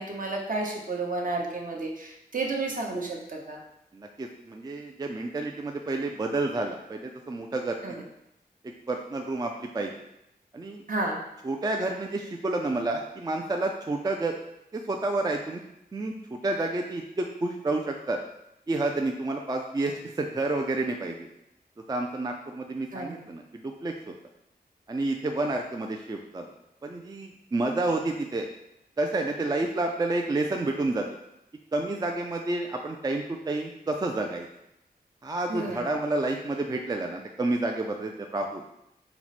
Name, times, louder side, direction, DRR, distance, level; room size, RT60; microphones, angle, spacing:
voice 1, 0.0-3.6 7.8-8.0 10.9-11.2 22.9-23.2 35.5-35.9, right 2 dB, 55° right, 0 dB, 0.8 m, -31 dB
voice 2, 3.9-8.0 8.9-9.9 10.5-10.8 11.4-14.3 14.7-15.6 15.9-18.2 18.7-21.3 21.9-24.1 24.9-26.5 26.8-28.5 29.0-31.1 31.7-34.5 35.2-38.6, right 2 dB, 25° right, 3 dB, 0.3 m, -30 dB
4.5 x 2.1 x 4.1 m, 0.83 s
cardioid pair, 55°, 17 cm